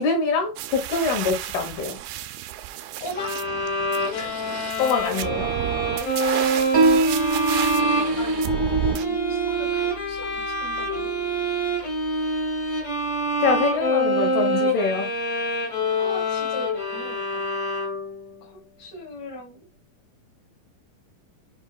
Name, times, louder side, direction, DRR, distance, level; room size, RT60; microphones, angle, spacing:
voice 1, 0.0-2.0 4.8-5.5 13.4-15.1, left 4 dB, 75° left, 3.1 m, -24 dB
sound 1, 0.6-9.1, right 13 dB, 80° right, 2.4 m, -32 dB
voice 2, 3.0-3.3 4.1-4.3 8.2-11.1 16.0-17.5 18.4-19.6, left 1 dB, 25° left, 2.5 m, -39 dB
sound 2, 3.1-18.3, right 1 dB, 45° left, 1.2 m, -26 dB
Piano, 6.7-13.8, right 2 dB, 65° right, 0.9 m, -27 dB
8.4 x 5.2 x 2.3 m
omnidirectional pair, 4.7 m